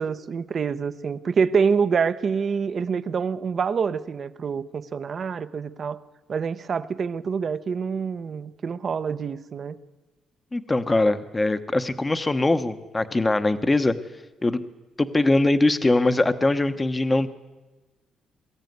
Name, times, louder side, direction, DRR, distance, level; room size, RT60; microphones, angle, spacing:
voice 1, 0.0-6.0 6.3-9.8, right 6 dB, 50° right, 14 dB, 0.9 m, -26 dB
voice 2, 10.5-13.9 14.4-14.6 15.0-17.3, left 2 dB, 20° left, 10 dB, 1.0 m, -22 dB
22.0 x 14.0 x 9.4 m, 1.2 s
cardioid pair, 90°, 0 cm